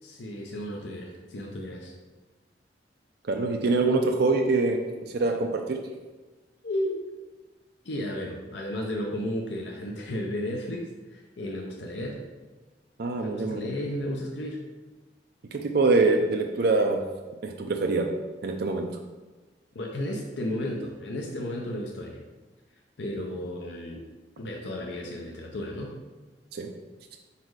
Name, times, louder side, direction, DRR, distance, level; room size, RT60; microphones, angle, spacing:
voice 1, 0.0-1.9 6.6-7.0 7.8-12.3 13.2-14.6 19.7-22.2 23.0-24.0 24.4-26.0, left 1 dB, 75° left, 0 dB, 0.7 m, -33 dB
voice 2, 3.3-5.8 13.0-13.7 15.5-17.0 17.4-18.1 18.4-18.9 26.5-26.7, right 3 dB, 60° right, 3 dB, 0.5 m, -24 dB
5.2 x 4.1 x 4.7 m, 1.3 s
head